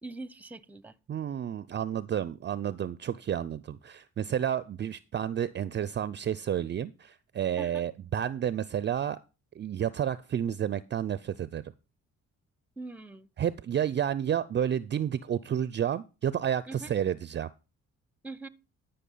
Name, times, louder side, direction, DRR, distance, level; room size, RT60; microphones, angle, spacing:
voice 1, 0.0-1.0 7.6-7.8 12.8-13.3 16.7-16.9 18.2-18.5, right 3 dB, 5° right, 0.7 m, -42 dB
voice 2, 1.1-9.2 9.6-11.6 13.4-17.5, right 9 dB, 35° right, 0.4 m, -30 dB
12.5 x 5.6 x 5.5 m
cardioid pair, 90°, 30 cm